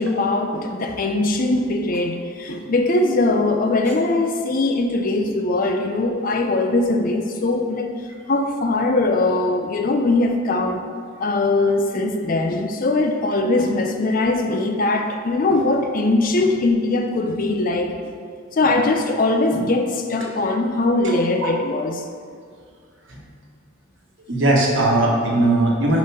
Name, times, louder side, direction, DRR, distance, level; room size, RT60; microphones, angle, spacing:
voice 1, 0.0-7.9 8.3-10.8 11.2-17.9 18.5-22.0, left 2 dB, 40° left, 5 dB, 0.4 m, -21 dB
voice 2, 21.0-21.5 23.1-23.2 24.3-26.0, right 2 dB, 60° right, -2 dB, 1.2 m, -19 dB
5.1 x 4.5 x 5.5 m, 2.1 s
head